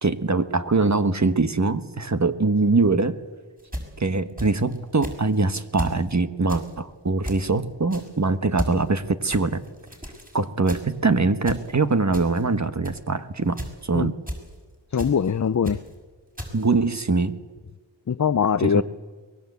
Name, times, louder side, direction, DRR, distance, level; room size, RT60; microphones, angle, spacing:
voice 1, 0.0-3.2 4.0-9.6 10.3-14.1 16.5-17.4 18.6-18.8, right 3 dB, 40° right, 10 dB, 1.4 m, -23 dB
sound 1, 3.6-4.8 5.0-5.4 5.8-6.0 6.5-6.7 7.2-7.5 7.9-8.2 8.6-8.8 9.3-10.4 10.6-11.0 11.4-11.7 12.1-12.4 12.8-13.1 13.5-13.8 14.3-14.5 15.0-15.3 15.6-15.9 16.4-16.7, equal, 20° right, 6.5 m, -34 dB
voice 2, 14.9-15.8 18.1-18.8, left 7 dB, 40° left, 13 dB, 0.6 m, -22 dB
23.0 x 20.5 x 8.2 m, 1.4 s
cardioid pair, 55°, 44 cm